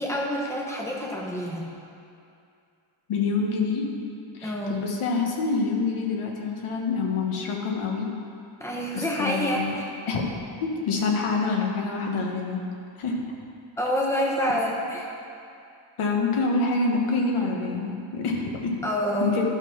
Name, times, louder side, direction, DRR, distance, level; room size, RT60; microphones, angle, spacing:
voice 1, 0.0-1.7 4.4-4.8 8.6-9.9 13.8-15.1 18.8-19.4, equal, 5° left, -2 dB, 0.9 m, -27 dB
voice 2, 3.1-3.9 4.3-8.1 8.9-9.7 10.1-10.2 10.6-12.6 13.0-13.2 16.0-18.7 19.2-19.5, left 4 dB, 75° left, 0 dB, 1.2 m, -26 dB
11.5 x 3.8 x 5.8 m, 2.5 s
wide cardioid pair, 175°, 50 cm